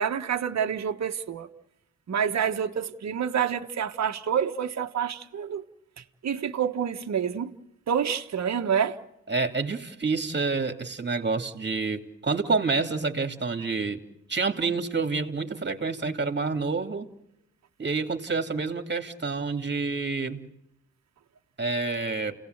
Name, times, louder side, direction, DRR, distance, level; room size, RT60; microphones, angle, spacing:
voice 1, 0.0-1.5 2.1-5.6 6.2-7.5 7.9-9.0, right 8 dB, 55° right, 1.5 m, -27 dB
voice 2, 9.3-14.0 14.3-17.1 17.8-20.5 21.6-22.3, right 4 dB, 35° right, 2.8 m, -28 dB
29.5 x 18.0 x 8.1 m
supercardioid pair, 60°, 31 cm